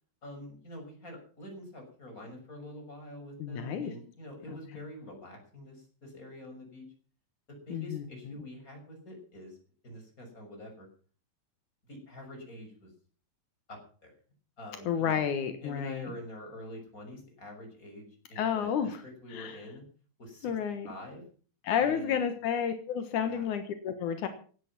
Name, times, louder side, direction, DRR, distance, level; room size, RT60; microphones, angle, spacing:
voice 1, 0.2-6.9 7.5-9.6 9.8-10.9 11.9-12.9 13.7-14.1 14.6-15.2 15.6-19.8 20.2-20.5 20.8-21.2 21.8-22.3 23.2-23.4, left 1 dB, 15° left, 3 dB, 6.4 m, -46 dB
voice 2, 3.4-3.9 4.7-4.8 7.7-8.4 14.9-16.1 18.4-19.0 19.3-19.6 20.4-20.9 21.6-24.3, left 8 dB, 75° left, 8 dB, 1.8 m, -31 dB
17.0 x 12.0 x 6.1 m, 0.43 s
omnidirectional pair, 5.7 m